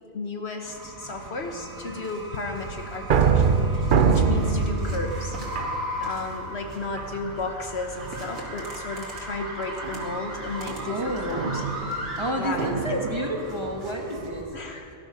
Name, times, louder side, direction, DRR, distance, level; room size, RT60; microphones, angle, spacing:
voice 1, 0.1-5.4 6.0-11.6 12.3-12.7 14.5-14.9, left 3 dB, 55° left, 4 dB, 1.3 m, -34 dB
sound 1, 0.6-14.4, equal, 75° right, 2.9 m, -37 dB
sound 2, 2.7-6.4 6.9-7.5 8.0-8.4 9.8-13.2, right 5 dB, 50° right, 0.7 m, -25 dB
voice 2, 10.8-11.5 12.2-14.5, equal, 20° right, 1 dB, 1.6 m, -30 dB
18.0 x 12.0 x 5.7 m, 2.8 s
omnidirectional pair, 1.4 m